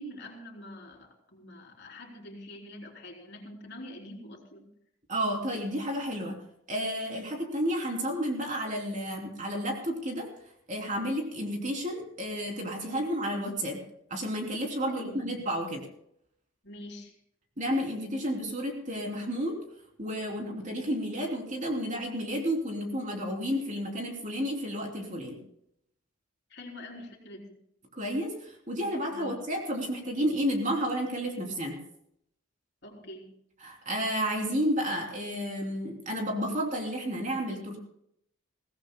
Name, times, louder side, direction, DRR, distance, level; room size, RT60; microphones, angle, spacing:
voice 1, 0.0-4.7 14.9-15.3 16.6-17.1 26.5-27.5 29.1-29.4 32.8-33.4, left 1 dB, 55° left, 0 dB, 3.4 m, -45 dB
voice 2, 5.1-6.4 6.7-10.3 10.7-13.8 14.1-15.8 17.6-19.6 20.0-25.4 27.9-31.8 33.6-37.8, equal, 40° right, 1 dB, 3.2 m, -31 dB
22.5 x 17.0 x 2.2 m, 0.72 s
head